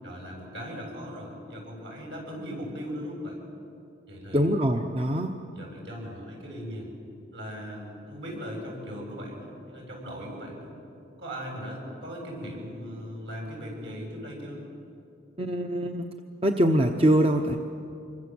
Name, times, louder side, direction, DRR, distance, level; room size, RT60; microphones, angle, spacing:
voice 1, 0.0-3.4 4.1-4.5 5.5-6.9 7.3-10.7 11.2-14.6, equal, 70° right, 0 dB, 7.9 m, -38 dB
voice 2, 4.3-5.4 15.4-16.1 16.4-17.6, equal, 30° right, 5 dB, 0.8 m, -23 dB
26.0 x 23.5 x 7.8 m, 2.5 s
head